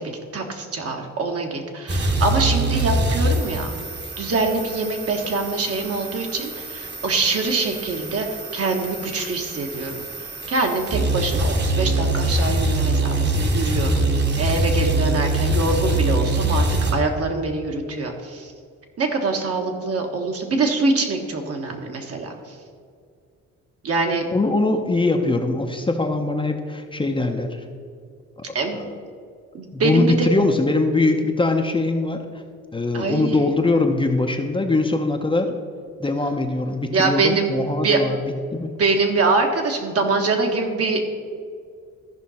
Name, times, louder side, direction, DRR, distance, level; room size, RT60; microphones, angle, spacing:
voice 1, 0.0-3.7 4.2-10.0 10.5-18.5 19.0-22.3 23.8-24.2 28.5-28.8 29.5-30.3 32.9-33.5 36.9-38.0 38.6-41.2, right 3 dB, 50° right, 2 dB, 1.4 m, -24 dB
sound 1, 1.9-16.9, right 2 dB, 35° right, 1.3 m, -24 dB
voice 2, 24.3-27.6 28.5-28.9 29.7-32.2 32.7-35.5 36.0-38.7, left 2 dB, 15° left, 4 dB, 0.7 m, -22 dB
14.0 x 5.3 x 4.2 m, 2.2 s
cardioid pair, 90°, 30 cm